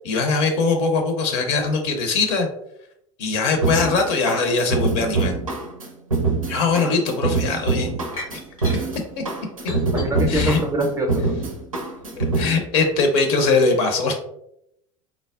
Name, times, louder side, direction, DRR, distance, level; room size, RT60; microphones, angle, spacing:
voice 1, 0.0-2.5 3.2-5.3 6.5-8.0 9.2-9.3 10.3-10.6 12.2-14.1, left 4 dB, 55° left, 5 dB, 0.6 m, -21 dB
sound 1, 3.6-12.6, right 3 dB, 90° right, 0.4 m, -24 dB
sound 2, 8.1-8.8 9.7-10.8 11.4-12.2, left 2 dB, 90° left, 0.9 m, -27 dB
voice 2, 9.9-11.3, right 1 dB, 20° right, 2 dB, 0.5 m, -24 dB
3.4 x 2.0 x 2.3 m, 0.76 s
figure-of-eight pair, 75°, 17 cm